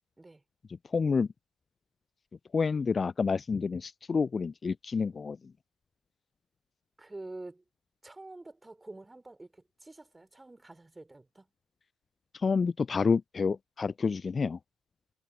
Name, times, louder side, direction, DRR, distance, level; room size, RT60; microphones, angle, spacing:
voice 1, 0.9-1.3 2.5-5.4 12.3-14.6, left 5 dB, 35° left, 0.3 m, -28 dB
voice 2, 7.0-7.6 8.0-11.5, right 2 dB, 15° right, 3.3 m, -47 dB
hypercardioid pair, 50°, 0 cm